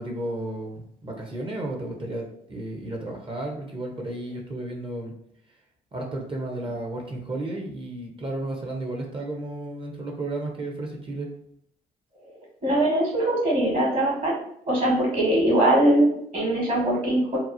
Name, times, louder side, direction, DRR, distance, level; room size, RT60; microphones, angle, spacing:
voice 1, 0.0-5.1 5.9-11.3, right 2 dB, 30° right, 0 dB, 0.7 m, -33 dB
voice 2, 12.6-14.4 14.7-17.4, right 1 dB, 50° right, -4 dB, 1.4 m, -22 dB
2.8 x 2.0 x 2.6 m, 0.70 s
hypercardioid pair, 55°, 17 cm